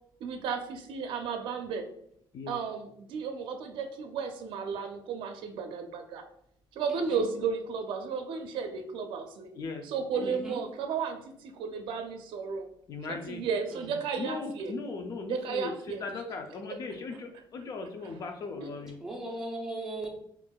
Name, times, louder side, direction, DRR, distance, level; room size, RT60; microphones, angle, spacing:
voice 1, 0.2-1.9 2.5-6.2 6.7-9.5 9.8-12.7 13.1-14.7 15.3-16.0 16.7-16.8 18.6-18.7, right 6 dB, 85° right, 5 dB, 0.4 m, -34 dB
voice 2, 6.9-7.3 10.1-10.6 13.7-13.9 17.1-17.2 19.0-20.1, right 2 dB, 5° right, -3 dB, 0.7 m, -39 dB
voice 3, 12.9-13.5 14.2-15.7 16.0-19.0, left 4 dB, 45° left, 4 dB, 0.4 m, -38 dB
4.4 x 2.5 x 2.3 m, 0.72 s
cardioid pair, 165°, 8 cm